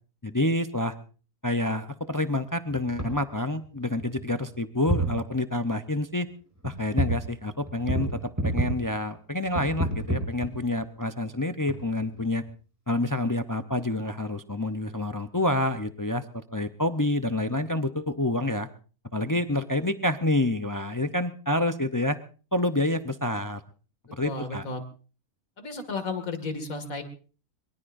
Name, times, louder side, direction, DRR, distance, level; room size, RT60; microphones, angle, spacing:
voice 1, 0.2-0.9 1.4-6.3 6.6-12.4 12.9-18.7 19.1-22.2 22.5-23.6 24.1-24.6, left 1 dB, 30° left, 9 dB, 0.3 m, -28 dB
sound 1, 2.7-3.1 3.6-3.7 4.0-4.6 4.8-5.2 6.6-7.2 7.5-8.9 9.5-10.8 11.6-12.5, right 1 dB, 10° right, 5.2 m, -29 dB
voice 2, 24.2-24.8 25.6-27.0, left 3 dB, 65° left, 7 dB, 2.7 m, -33 dB
23.5 x 22.5 x 2.6 m, 0.38 s
omnidirectional pair, 1.6 m